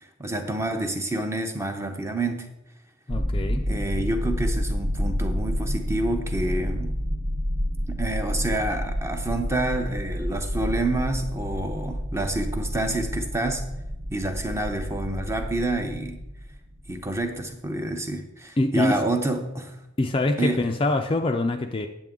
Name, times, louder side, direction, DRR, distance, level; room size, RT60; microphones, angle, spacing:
voice 1, 0.2-2.5 3.6-7.0 7.9-13.7 14.1-16.2 16.9-19.7 20.4-20.7, right 2 dB, 10° right, 5 dB, 0.7 m, -28 dB
voice 2, 3.1-3.6 18.6-19.0 20.0-21.9, left 2 dB, 25° left, 4 dB, 0.4 m, -24 dB
sound 1, 3.1-17.3, equal, 65° right, 1.0 m, -29 dB
9.2 x 7.6 x 3.7 m, 0.91 s
head